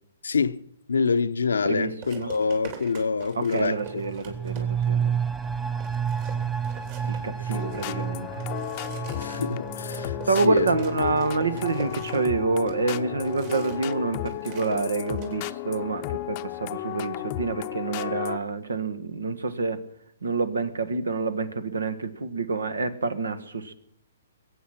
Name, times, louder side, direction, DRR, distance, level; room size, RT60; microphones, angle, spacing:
voice 1, 0.2-0.6 0.9-3.8 9.2-10.2 10.4-10.7, left 5 dB, 85° left, 0.7 m, -25 dB
sound 1, 1.0-1.2 2.0-5.0 5.4-5.5 5.8-13.9 14.2-15.4, right 8 dB, 45° right, 3.3 m, -42 dB
voice 2, 1.6-2.3 3.3-5.2 7.1-8.4 10.3-19.8 20.2-23.7, right 3 dB, 90° right, 1.4 m, -27 dB
sound 2, 3.8-13.2 13.5-13.6, right 7 dB, 10° right, 0.6 m, -31 dB
sound 3, 7.5-18.4, left 16 dB, 40° left, 0.6 m, -34 dB
22.0 x 8.3 x 5.9 m
hypercardioid pair, 140°, 0 cm